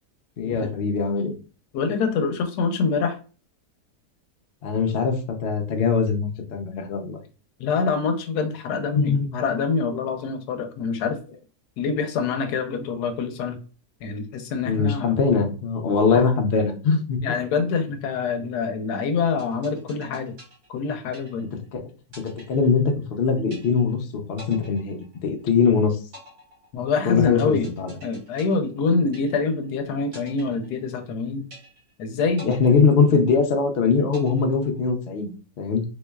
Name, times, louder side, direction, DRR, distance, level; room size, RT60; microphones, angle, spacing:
voice 1, 0.4-1.4 4.6-7.2 8.9-9.3 14.7-17.2 21.7-21.8 22.2-26.0 27.0-27.9 32.4-35.8, left 5 dB, 55° left, 3 dB, 0.7 m, -22 dB
voice 2, 1.7-3.2 7.6-11.2 11.8-13.6 14.0-15.1 16.1-16.2 17.2-20.3 20.7-21.5 26.7-27.7 28.0-31.5 32.0-32.8, left 5 dB, 90° left, 7 dB, 1.2 m, -25 dB
sound 1, 19.4-21.7 22.1-23.2 23.5-24.0 24.4-25.6 26.1-29.7 30.1-31.2 31.5-32.0 32.4-33.6 34.1-35.1, equal, 60° right, 2.1 m, -47 dB
3.6 x 3.0 x 2.2 m, 0.36 s
omnidirectional pair, 1.6 m